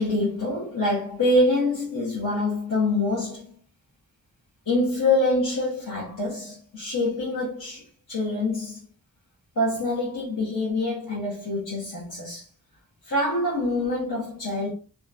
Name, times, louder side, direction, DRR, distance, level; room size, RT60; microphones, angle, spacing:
voice 1, 0.0-3.5 4.7-8.8 9.6-12.4 13.1-14.7, left 2 dB, 60° left, 1.0 m, -25 dB
2.7 x 2.3 x 2.4 m
wide cardioid pair, 75°, 37 cm